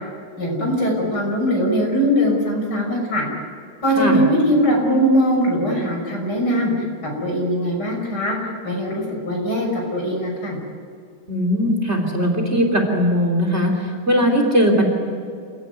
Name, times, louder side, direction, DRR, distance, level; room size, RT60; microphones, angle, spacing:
voice 1, 0.4-3.2 3.8-6.8 7.2-8.4 8.6-10.6, equal, 85° left, 0 dB, 6.8 m, -20 dB
voice 2, 11.3-14.8, equal, 40° right, 3 dB, 3.6 m, -19 dB
28.0 x 17.5 x 9.5 m, 2.4 s
omnidirectional pair, 1.8 m